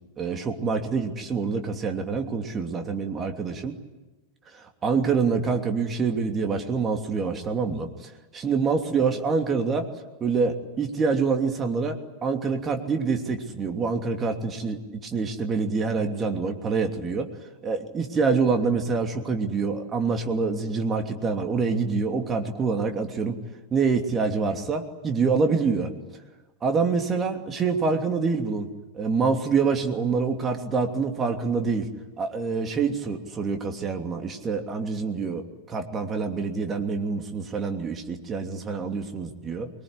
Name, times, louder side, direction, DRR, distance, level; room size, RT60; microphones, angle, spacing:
voice 1, 0.2-3.8 4.5-9.9 10.2-17.3 17.6-23.4 23.7-25.9 26.6-28.7 28.9-31.9 32.2-39.7, right 5 dB, 20° right, 4 dB, 2.9 m, -26 dB
25.0 x 22.0 x 10.0 m, 1.2 s
figure-of-eight pair, 90°, 0 cm